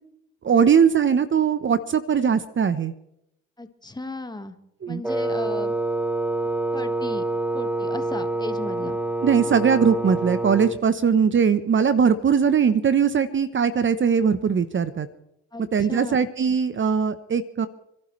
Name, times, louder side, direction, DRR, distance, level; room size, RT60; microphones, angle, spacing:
voice 1, 0.4-2.9 4.8-5.0 9.2-15.1 15.7-17.7, right 6 dB, 40° right, 13 dB, 0.9 m, -20 dB
voice 2, 3.6-4.5 4.9-5.8 6.7-7.2 7.5-9.0 15.5-16.3, left 2 dB, 15° left, 8 dB, 1.6 m, -35 dB
Wind instrument woodwind instrument, 5.0-10.8, right 2 dB, 5° right, 1.2 m, -26 dB
29.0 x 11.5 x 3.2 m, 0.81 s
hypercardioid pair, 55°, 30 cm